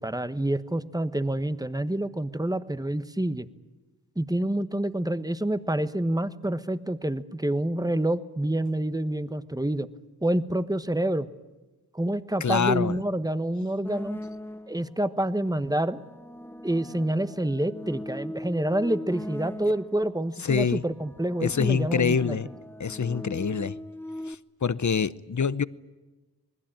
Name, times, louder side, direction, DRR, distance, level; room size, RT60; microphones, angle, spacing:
voice 1, 0.0-3.5 4.2-9.9 10.2-11.3 11.9-14.2 14.7-16.0 16.6-22.4, right 1 dB, 10° right, 1.1 m, -27 dB
voice 2, 12.4-13.0 20.4-20.8 21.4-22.5 22.8-23.8 24.3-25.6, left 6 dB, 50° left, 0.8 m, -25 dB
sound 1, 13.8-14.9 15.7-20.2 20.9-24.3, left 1 dB, 5° left, 0.8 m, -40 dB
27.5 x 20.5 x 8.9 m
wide cardioid pair, 55°, 38 cm